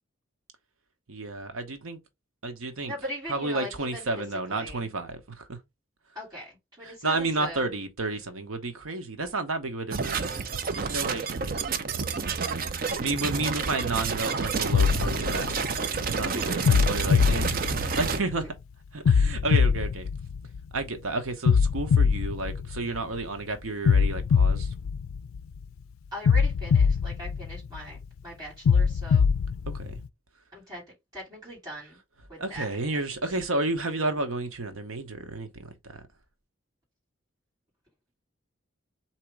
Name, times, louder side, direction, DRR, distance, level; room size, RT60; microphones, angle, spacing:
voice 1, 1.1-2.0 2.4-2.9 3.3-5.6 6.8-10.4 10.7-12.6 13.0-15.5 16.1-17.5 17.9-18.4 18.9-20.1 20.7-24.7 29.7-30.0 32.4-36.0, right 2 dB, 85° right, 1.0 m, -31 dB
voice 2, 2.8-4.2 4.5-4.8 6.1-7.6 16.2-16.7 18.4-18.5 26.1-29.3 30.5-30.8 31.1-32.0 32.3-32.7, equal, 20° right, 2.6 m, -40 dB
sound 1, 9.9-18.2, right 5 dB, 45° right, 0.5 m, -29 dB
sound 2, 14.7-16.0 16.6-18.4 19.0-20.8 21.4-23.2 23.8-25.6 26.2-28.0 28.6-30.0, left 6 dB, 85° left, 0.3 m, -23 dB
3.9 x 2.9 x 4.6 m
head